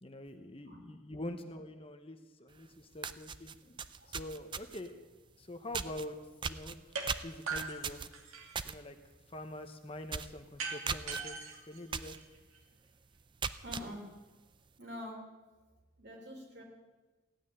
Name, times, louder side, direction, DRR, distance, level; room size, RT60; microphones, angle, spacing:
voice 1, 0.0-3.8 4.1-6.2 6.4-8.0 8.6-9.0 9.3-12.1, left 1 dB, 25° left, 7 dB, 0.9 m, -45 dB
sound 1, 2.6-2.7 3.0-4.9 5.7-6.1 6.4-8.8 9.1-9.4 9.6-9.7 10.1-10.4 10.9-11.2 11.9-12.2 12.6-12.7 13.2-13.9, right 6 dB, 20° right, 0.4 m, -38 dB
sound 2, 6.9-7.1 7.5-8.7 10.6-12.6, right 4 dB, 85° right, 2.5 m, -40 dB
voice 2, 13.6-14.1 14.8-15.2 16.0-16.6, left 1 dB, 55° right, 0 dB, 3.6 m, -45 dB
16.0 x 9.1 x 10.0 m, 1.2 s
head